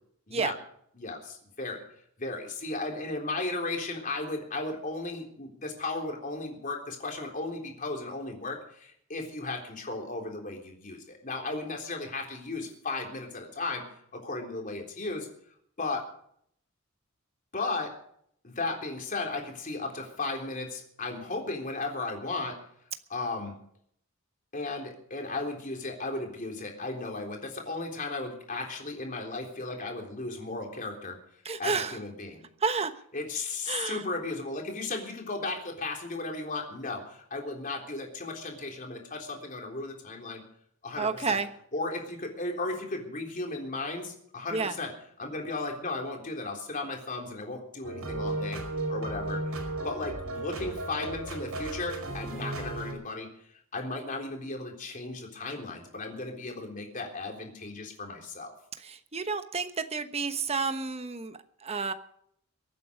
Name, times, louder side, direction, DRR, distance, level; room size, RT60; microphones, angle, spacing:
voice 1, 0.9-1.8 2.2-13.8 14.1-15.3 15.8-16.1 17.5-18.0 18.4-22.6 23.1-23.5 24.5-31.2 31.6-32.4 33.1-40.4 40.8-41.4 41.7-48.6 48.9-49.6 49.8-53.3 53.7-58.5, left 3 dB, 40° left, 1 dB, 3.7 m, -35 dB
voice 2, 31.4-32.0 32.6-32.9 33.7-34.0 41.0-41.5 44.5-44.7 58.8-61.9, right 4 dB, 30° right, 9 dB, 1.1 m, -30 dB
sound 1, 47.8-52.9, right 2 dB, 90° right, 5.1 m, -34 dB
23.5 x 9.3 x 5.1 m, 0.67 s
head